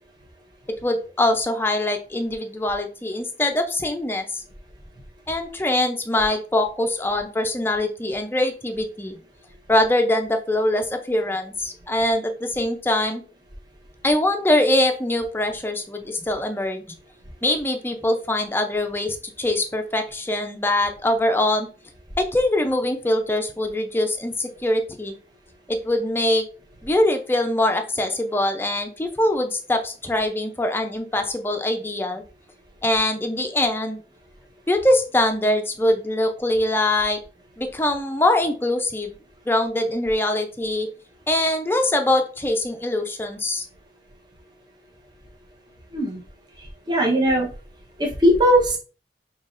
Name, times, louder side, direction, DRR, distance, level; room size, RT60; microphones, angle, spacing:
voice 1, 0.7-4.4 5.3-9.2 9.7-13.2 14.0-16.8 17.4-21.7 22.2-25.1 25.7-26.4 26.8-32.2 32.8-34.0 34.7-37.2 37.6-39.1 39.5-40.9 41.3-43.7, left 1 dB, 15° left, 5 dB, 0.5 m, -23 dB
voice 2, 46.9-47.5 48.0-48.8, equal, 25° right, -1 dB, 1.0 m, -19 dB
5.7 x 3.0 x 2.5 m, 0.36 s
head